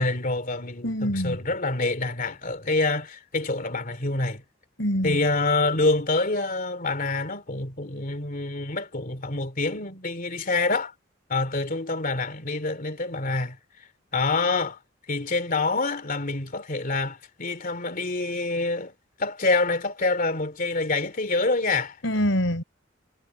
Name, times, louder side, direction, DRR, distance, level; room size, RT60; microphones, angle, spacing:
voice 1, 0.0-4.4 5.0-10.9 11.3-13.6 14.1-14.8 15.1-18.9 19.2-22.0, left 3 dB, 45° left, 2.8 m, -26 dB
voice 2, 0.8-1.4 4.8-5.2 22.0-22.6, equal, 75° left, 4.7 m, -25 dB
head